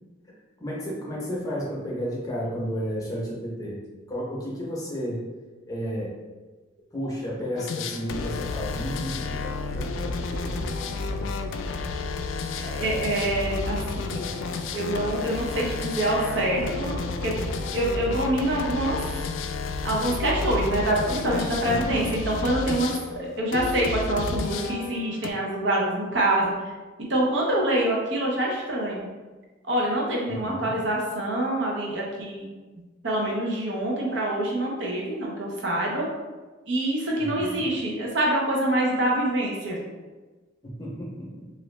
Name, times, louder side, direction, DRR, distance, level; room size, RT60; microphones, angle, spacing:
voice 1, 0.6-3.8 4.1-5.2 5.7-6.1 6.9-10.6 21.6-22.0 30.3-30.8 37.2-37.7 40.6-41.5, equal, 20° left, -5 dB, 0.8 m, -32 dB
sound 1, 7.6-25.3, left 3 dB, 75° left, 0.3 m, -31 dB
voice 2, 12.6-14.2 14.7-17.4 17.7-19.0 19.8-26.5 27.1-29.1 29.6-32.5 33.0-36.1 36.7-39.8, right 1 dB, 65° right, -3 dB, 0.8 m, -26 dB
3.0 x 2.6 x 3.2 m, 1.3 s
head